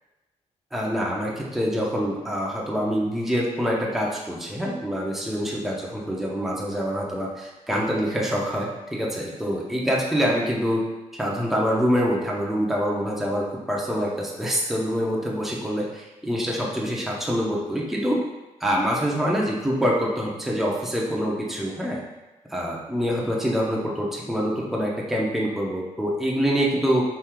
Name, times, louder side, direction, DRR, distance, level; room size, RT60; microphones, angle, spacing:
voice 1, 0.7-10.8 11.2-18.2 18.6-22.0 22.5-27.0, equal, ahead, -3 dB, 0.8 m, -25 dB
4.4 x 2.7 x 3.7 m, 1.1 s
cardioid pair, 85°, 12 cm